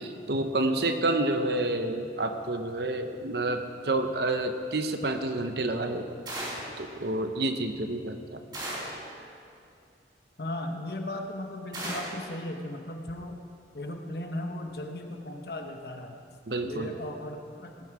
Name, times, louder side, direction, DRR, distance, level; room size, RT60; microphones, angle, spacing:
voice 1, 0.0-8.4 16.5-16.9, right 2 dB, 60° right, 7 dB, 0.9 m, -29 dB
sound 1, 6.3-6.8 8.5-9.1 11.7-12.2, right 1 dB, 25° right, 3.9 m, -35 dB
voice 2, 10.4-13.4 13.7-16.2 16.6-17.7, left 1 dB, 60° left, 4 dB, 1.0 m, -36 dB
18.0 x 9.2 x 4.8 m, 2.3 s
head